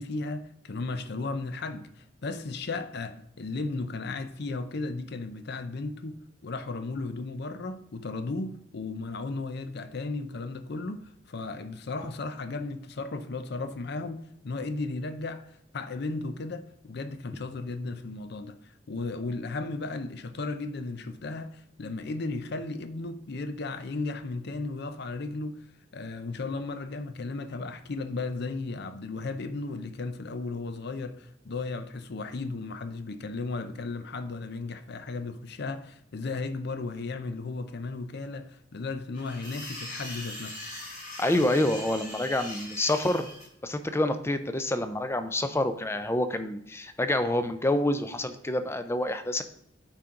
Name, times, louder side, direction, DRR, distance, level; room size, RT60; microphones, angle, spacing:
voice 1, 0.0-15.4 15.7-25.7 25.9-40.6, left 3 dB, 55° left, 0.6 m, -35 dB
sound 1, 39.1-43.5, left 1 dB, 40° left, 2.0 m, -41 dB
voice 2, 41.2-43.3 43.6-49.4, left 1 dB, 15° left, 0.5 m, -27 dB
9.0 x 4.5 x 3.7 m
head